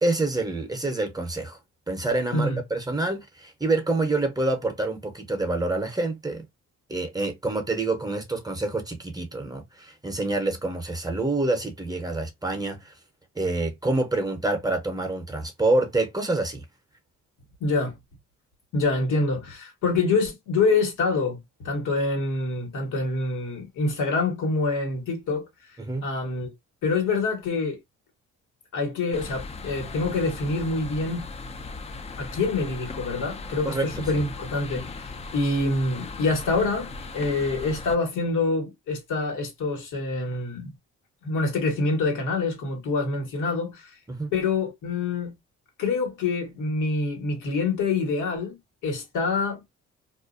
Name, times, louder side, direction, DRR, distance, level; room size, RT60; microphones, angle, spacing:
voice 1, 0.0-1.6 1.9-6.4 6.9-12.9 13.4-16.6 25.8-26.0 33.6-34.2 44.1-44.3, right 2 dB, 15° right, 0.7 m, -27 dB
voice 2, 17.6-17.9 18.7-21.4 21.6-25.5 26.0-26.5 26.8-27.8 28.7-31.3 32.2-35.1 35.3-40.7 41.2-43.9 44.3-45.3 45.8-48.6 48.8-49.7, left 3 dB, 85° left, 1.2 m, -26 dB
sound 1, 29.1-38.0, left 3 dB, 20° left, 0.3 m, -38 dB
2.4 x 2.1 x 2.4 m
cardioid pair, 90°, 30 cm